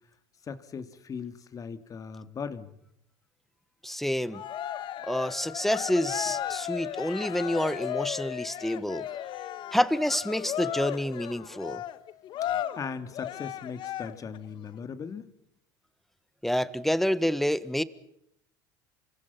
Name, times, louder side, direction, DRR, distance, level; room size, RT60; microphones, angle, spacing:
voice 1, 0.5-2.8 12.7-15.3, left 6 dB, 35° left, 11 dB, 2.8 m, -38 dB
voice 2, 3.8-4.4 5.0-9.1 9.7-11.8 16.4-17.8, equal, ahead, 16 dB, 1.5 m, -28 dB
Cheering, 4.3-14.4, left 11 dB, 50° left, 1.8 m, -35 dB
29.5 x 25.5 x 5.9 m, 0.78 s
supercardioid pair, 105°, 10 cm